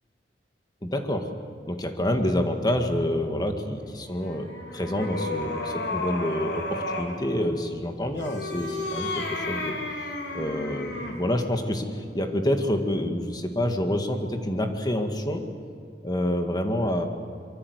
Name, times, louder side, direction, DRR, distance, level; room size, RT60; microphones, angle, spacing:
voice 1, 0.8-1.3 1.7-9.8 10.3-15.4 16.0-17.1, left 1 dB, 25° left, 5 dB, 1.9 m, -27 dB
sound 1, 4.2-7.2 8.1-11.3, left 2 dB, 80° left, 3.8 m, -32 dB
25.0 x 23.0 x 8.1 m, 2.5 s
head